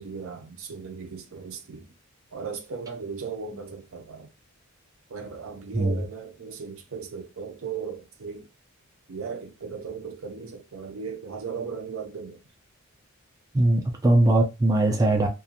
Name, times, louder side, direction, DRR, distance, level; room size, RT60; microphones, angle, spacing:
voice 1, 0.0-1.9 2.3-4.3 5.1-8.5 9.1-12.4, right 5 dB, 70° right, 0.5 m, -37 dB
voice 2, 5.7-6.1 13.5-15.3, right 1 dB, 15° right, 0.4 m, -21 dB
2.4 x 2.3 x 2.7 m
head